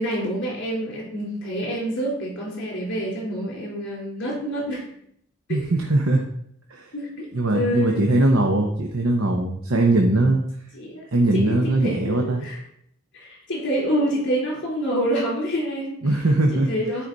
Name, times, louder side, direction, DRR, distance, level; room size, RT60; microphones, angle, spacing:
voice 1, 0.0-4.9 5.5-5.6 6.9-7.3 7.5-8.1 10.7-11.1 11.3-12.6 13.1-16.0 16.5-17.1, equal, 60° left, -3 dB, 3.6 m, -27 dB
voice 2, 5.5-6.2 6.7-6.9 7.3-10.4 11.1-12.5 16.0-16.7, right 2 dB, 75° right, 1 dB, 1.1 m, -20 dB
13.0 x 5.1 x 4.0 m, 0.70 s
head